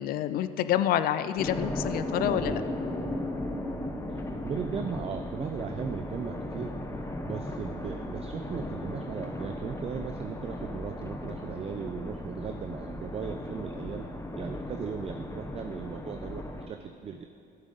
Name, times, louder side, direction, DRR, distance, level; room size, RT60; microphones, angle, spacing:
voice 1, 0.0-2.6, left 11 dB, 60° left, 13 dB, 0.4 m, -28 dB
sound 1, 1.4-16.7, left 1 dB, 15° left, 0.8 m, -36 dB
voice 2, 4.1-6.8 7.2-17.4, right 7 dB, 35° right, 7 dB, 0.4 m, -37 dB
14.0 x 7.3 x 3.9 m, 2.6 s
cardioid pair, 110°, 17 cm